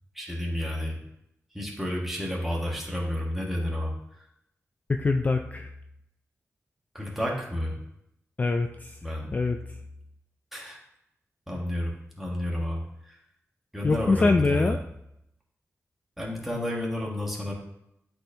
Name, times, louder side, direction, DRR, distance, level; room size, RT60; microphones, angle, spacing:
voice 1, 0.1-1.0 1.5-3.9 6.9-7.8 9.0-9.3 10.5-10.8 11.5-13.2 13.7-14.7 16.2-17.5, left 1 dB, 5° right, -3 dB, 1.6 m, -31 dB
voice 2, 4.9-5.7 8.4-9.0 9.3-9.6 13.8-14.8, left 3 dB, 30° left, 5 dB, 0.3 m, -24 dB
11.5 x 4.4 x 2.8 m, 0.81 s
wide cardioid pair, 135°, 5 cm